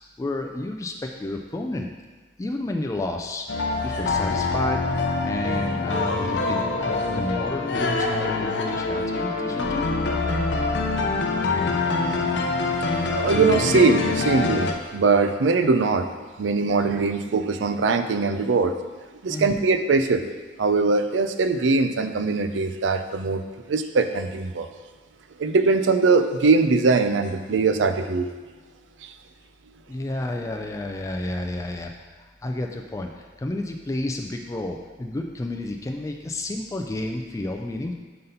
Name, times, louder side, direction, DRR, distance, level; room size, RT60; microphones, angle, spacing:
voice 1, 0.0-1.9 2.4-9.8 19.3-19.6 29.9-37.9, left 2 dB, 15° left, 2 dB, 0.3 m, -31 dB
sound 1, 3.5-14.7, left 3 dB, 70° left, 0.6 m, -25 dB
voice 2, 12.9-16.1 16.4-18.7 19.2-20.2 20.6-23.4 23.7-24.7 25.4-28.3 29.0-29.1, right 4 dB, 90° right, 9 dB, 0.4 m, -21 dB
5.6 x 4.0 x 5.3 m, 1.3 s
head